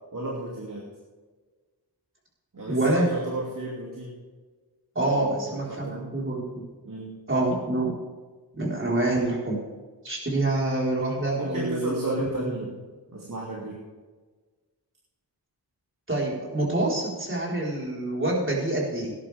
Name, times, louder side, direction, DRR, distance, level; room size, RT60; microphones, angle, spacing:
voice 1, 0.1-0.9 2.5-4.2 5.0-6.1 6.8-7.2 11.3-12.7 13.1-13.8, right 2 dB, 50° right, -4 dB, 2.9 m, -33 dB
voice 2, 2.7-3.1 4.9-6.6 7.3-8.0 8.5-9.6 10.0-12.7 16.1-19.2, right 2 dB, 30° right, -4 dB, 4.7 m, -26 dB
18.5 x 10.5 x 3.6 m, 1.4 s
wide cardioid pair, 100°, 43 cm